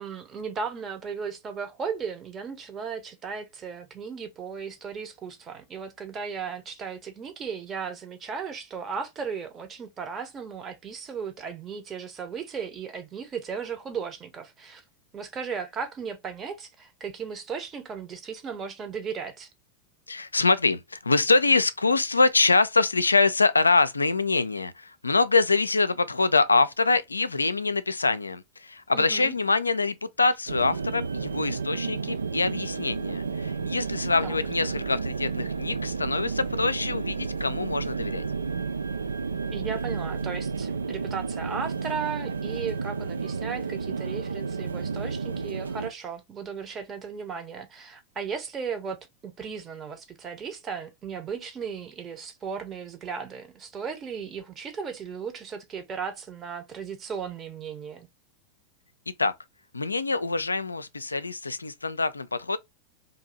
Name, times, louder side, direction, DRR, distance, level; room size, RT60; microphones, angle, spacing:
voice 1, 0.0-14.8 15.1-19.5 28.9-29.4 34.2-34.4 39.5-58.1, right 6 dB, 25° right, 0.8 m, -36 dB
voice 2, 20.1-38.2 59.2-59.3 59.7-62.6, left 3 dB, 80° left, 0.3 m, -24 dB
sound 1, 30.5-45.9, right 5 dB, 75° right, 0.3 m, -31 dB
2.7 x 2.6 x 4.0 m
figure-of-eight pair, 90°, 0 cm